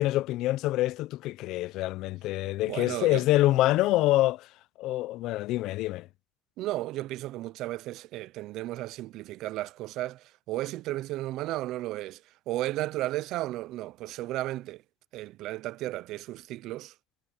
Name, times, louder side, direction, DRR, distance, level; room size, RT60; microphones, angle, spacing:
voice 1, 0.0-4.5 4.8-6.1, left 16 dB, 70° left, 0.5 m, -26 dB
voice 2, 2.7-3.2 6.6-14.8 15.1-16.9, right 16 dB, 70° right, 0.5 m, -34 dB
cardioid pair, 120°, 0 cm